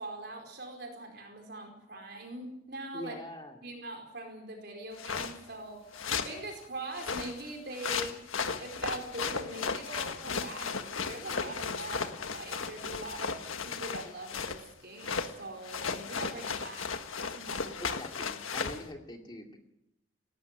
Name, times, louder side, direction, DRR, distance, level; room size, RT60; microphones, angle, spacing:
voice 1, 0.0-3.1 3.6-8.2 8.6-16.9 17.3-17.8, right 2 dB, 55° right, 3 dB, 4.7 m, -42 dB
voice 2, 2.9-3.6 17.8-19.6, left 1 dB, 20° left, 3 dB, 2.4 m, -43 dB
sound 1, 5.0-5.4 5.9-6.4 7.0-14.6 15.0-15.3 15.6-18.8, left 5 dB, 80° left, 1.6 m, -35 dB
18.0 x 15.0 x 9.8 m, 0.84 s
head